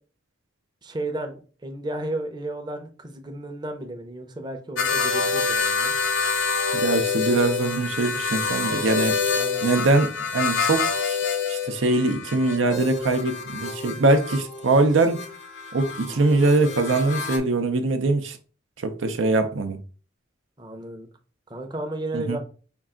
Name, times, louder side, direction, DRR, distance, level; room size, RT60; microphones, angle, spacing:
voice 1, 0.8-5.9 9.3-9.6 20.6-21.1 21.5-22.4, right 1 dB, 20° right, 0.6 m, -33 dB
sound 1, 4.8-17.4, left 5 dB, 75° left, 0.7 m, -27 dB
voice 2, 6.7-9.2 9.6-11.2 11.5-15.2 15.7-18.4 18.8-19.8 22.1-22.4, right 2 dB, 85° right, 0.6 m, -22 dB
5.4 x 2.4 x 3.6 m
head